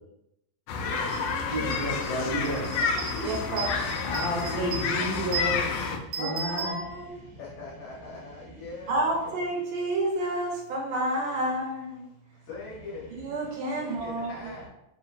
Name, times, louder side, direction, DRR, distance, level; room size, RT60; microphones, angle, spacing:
sound 1, 0.7-6.0, left 5 dB, 85° left, 1.7 m, -29 dB
voice 1, 0.9-1.8 7.4-9.1 12.5-13.1 13.7-14.7, left 4 dB, 70° left, -6 dB, 2.0 m, -42 dB
sound 2, 1.1-1.2 1.6-7.4, right 5 dB, 60° right, 1.4 m, -38 dB
voice 2, 1.5-2.7 4.1-5.9 6.2-6.9, equal, 50° left, -7 dB, 2.1 m, -31 dB
voice 3, 3.1-3.8 6.1-7.3 8.9-12.0 13.2-14.3, right 1 dB, 75° right, -1 dB, 2.2 m, -30 dB
6.9 x 2.8 x 2.4 m, 0.86 s
omnidirectional pair, 4.1 m